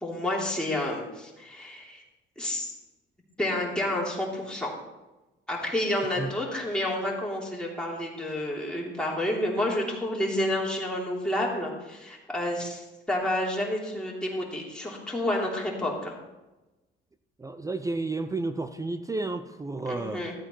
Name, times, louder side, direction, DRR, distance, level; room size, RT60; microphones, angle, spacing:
voice 1, 0.0-2.0 2.4-2.7 3.4-4.7 5.5-16.1 19.9-20.3, left 1 dB, 5° left, -4 dB, 3.2 m, -30 dB
voice 2, 17.4-20.2, right 3 dB, 15° right, 9 dB, 0.6 m, -31 dB
13.5 x 8.6 x 4.5 m, 1.0 s
cardioid pair, 120°, 21 cm